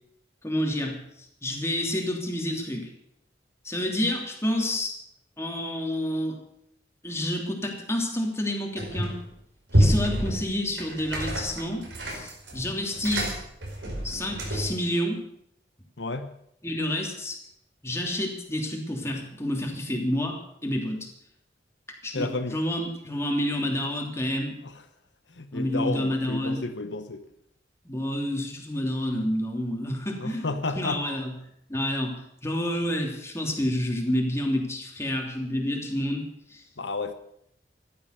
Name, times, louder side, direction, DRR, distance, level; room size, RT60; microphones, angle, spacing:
voice 1, 0.4-1.0 1.4-2.9 3.6-4.9 5.4-6.4 7.0-9.1 9.7-13.3 14.0-15.2 16.6-17.4 17.8-20.4 20.6-21.1 22.0-24.5 25.5-26.6 27.8-31.3 31.7-32.2 32.4-36.2 36.5-36.6, left 1 dB, 15° left, 1 dB, 3.1 m, -29 dB
sound 1, 8.8-9.3 9.7-14.8, equal, 80° right, 4.9 m, -27 dB
voice 2, 16.0-16.3 22.1-22.6 24.6-24.7 25.3-27.2 30.2-31.0 36.8-37.1, left 3 dB, 80° left, 9 dB, 1.1 m, -31 dB
15.0 x 12.0 x 6.8 m, 0.75 s
head